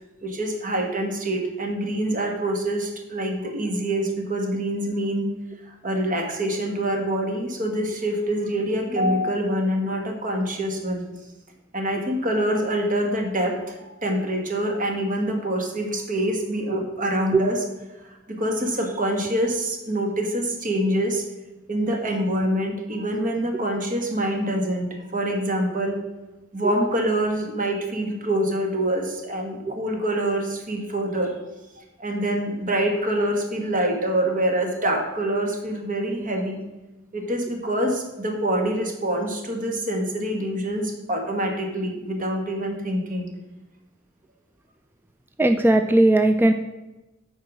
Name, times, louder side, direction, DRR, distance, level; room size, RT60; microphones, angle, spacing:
voice 1, 0.2-5.3 5.8-11.0 11.7-17.6 18.3-21.2 21.7-26.0 26.5-31.4 31.8-36.6 37.1-43.3, right 1 dB, 40° right, 2 dB, 1.5 m, -25 dB
voice 2, 45.4-46.5, right 1 dB, 10° right, 7 dB, 0.3 m, -17 dB
8.5 x 4.7 x 6.2 m, 1.0 s
head